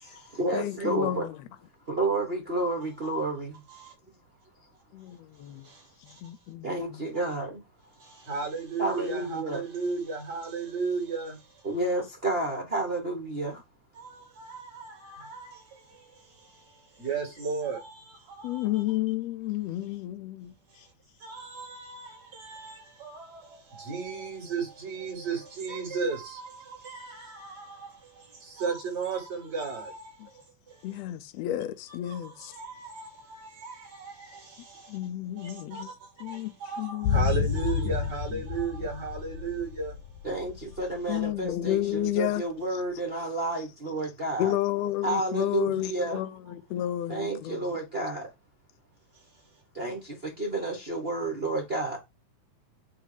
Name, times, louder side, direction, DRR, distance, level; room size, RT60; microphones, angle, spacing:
voice 1, 0.0-1.3 1.9-3.6 6.6-7.6 8.8-9.6 11.6-13.6 40.2-44.5 45.0-46.2 47.1-48.3 49.7-52.0, right 2 dB, 75° right, 0.5 m, -30 dB
voice 2, 0.5-1.4 4.9-5.7 6.0-7.0 18.4-20.5 30.2-30.3 30.8-32.5 34.9-35.9 36.2-37.5 41.1-42.4 44.4-47.7, left 13 dB, 90° left, 1.4 m, -31 dB
voice 3, 5.6-6.2 8.0-11.7 13.9-18.8 20.7-20.9 21.2-31.0 31.9-35.1 35.4-40.0, right 5 dB, 50° right, 6.2 m, -36 dB
sound 1, 37.0-41.3 41.5-41.6, left 7 dB, 75° left, 1.9 m, -30 dB
9.6 x 3.3 x 5.0 m
omnidirectional pair, 3.8 m